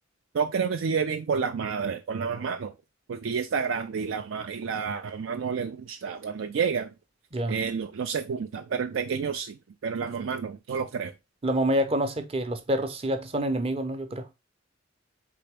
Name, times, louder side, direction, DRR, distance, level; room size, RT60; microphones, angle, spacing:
voice 1, 0.3-2.7 3.1-6.9 7.5-11.1, right 6 dB, 85° right, 0.4 m, -30 dB
voice 2, 11.4-14.3, right 1 dB, 30° right, 0.6 m, -27 dB
4.3 x 3.4 x 3.3 m
head